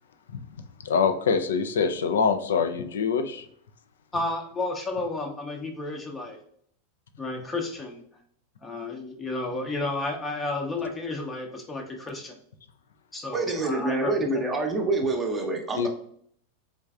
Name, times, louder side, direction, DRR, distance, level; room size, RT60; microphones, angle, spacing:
voice 1, 0.8-3.4 15.8-15.9, left 6 dB, 70° left, 9 dB, 0.3 m, -24 dB
voice 2, 4.1-6.4 7.2-8.0 8.6-12.4 13.1-14.4, left 2 dB, 20° left, 2 dB, 0.6 m, -32 dB
voice 3, 13.3-15.9, right 3 dB, 20° right, 2 dB, 0.7 m, -26 dB
3.4 x 3.1 x 2.3 m, 0.64 s
figure-of-eight pair, 90°, 0 cm